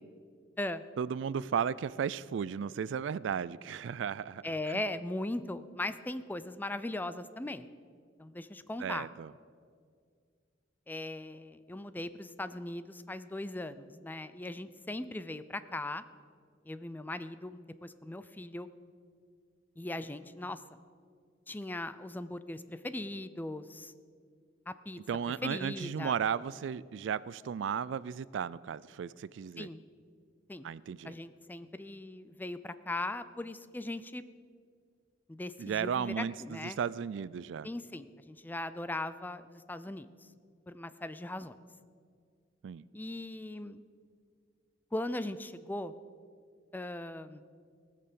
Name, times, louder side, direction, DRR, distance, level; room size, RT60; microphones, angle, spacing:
voice 1, 1.0-4.4 4.7-4.8 8.8-9.3 25.1-29.7 30.6-31.1 35.6-37.7 42.6-42.8, right 7 dB, 70° right, 20 dB, 0.3 m, -35 dB
voice 2, 4.4-7.7 8.2-9.1 10.9-16.0 16.7-18.7 19.8-20.6 21.5-23.9 24.7-25.0 25.4-26.2 29.6-29.8 30.5-30.7 31.0-34.2 35.3-36.8 37.6-40.1 40.7-41.6 42.9-43.8 44.9-45.9 46.7-47.4, left 1 dB, 10° left, 13 dB, 0.4 m, -39 dB
18.5 x 6.7 x 6.9 m, 2.2 s
head